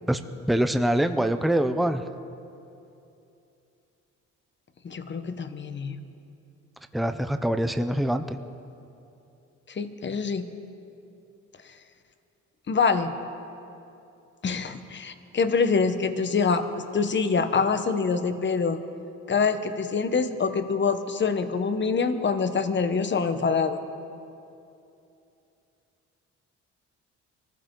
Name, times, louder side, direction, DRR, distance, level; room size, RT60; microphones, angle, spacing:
voice 1, 0.5-2.0 6.9-8.4, right 1 dB, ahead, 8 dB, 0.7 m, -24 dB
voice 2, 4.8-6.0 9.7-10.5 12.7-13.1 14.4-18.8 19.3-23.8, left 5 dB, 40° left, 9 dB, 1.2 m, -25 dB
24.5 x 15.0 x 3.9 m, 2.8 s
cardioid pair, 90°, 30 cm